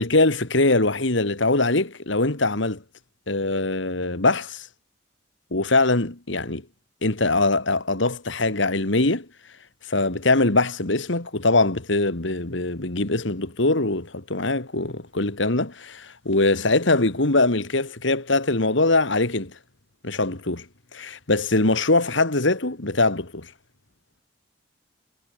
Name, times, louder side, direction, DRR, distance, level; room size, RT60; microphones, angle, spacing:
voice 1, 0.0-2.8 3.3-4.7 5.5-6.6 7.0-9.3 9.9-19.6 20.0-20.7 20.9-23.5, left 2 dB, 70° left, 2.3 m, -22 dB
head